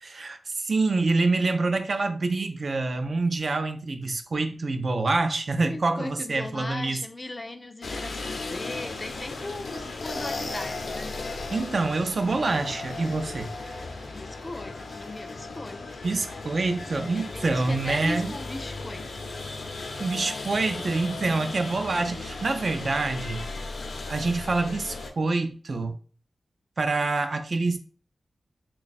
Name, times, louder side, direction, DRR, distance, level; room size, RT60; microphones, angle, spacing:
voice 1, 0.0-7.0 11.5-13.8 16.0-18.3 20.0-23.5 24.1-26.0 26.8-27.8, right 3 dB, 55° right, 0.4 m, -26 dB
voice 2, 5.7-11.2 14.1-16.0 16.9-19.1, left 2 dB, 25° left, 0.3 m, -38 dB
sound 1, 7.8-25.1, left 3 dB, 80° left, 0.6 m, -36 dB
3.2 x 2.2 x 4.0 m
wide cardioid pair, 120°, 0 cm